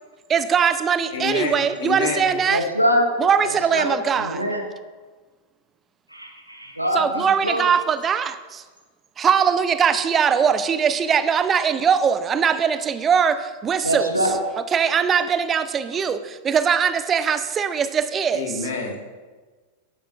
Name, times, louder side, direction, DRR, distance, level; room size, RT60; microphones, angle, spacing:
voice 1, 0.3-2.6 3.2-4.4 6.9-8.6 9.2-14.1 14.7-18.6, right 7 dB, 25° right, 12 dB, 0.5 m, -21 dB
voice 2, 1.1-2.3 18.3-19.0, left 4 dB, 60° left, 1 dB, 1.7 m, -27 dB
voice 3, 2.5-3.1 3.4-4.7 6.1-7.7 13.8-14.3, equal, 90° right, 3 dB, 1.0 m, -24 dB
11.0 x 8.9 x 2.6 m, 1.3 s
figure-of-eight pair, 90°, 0 cm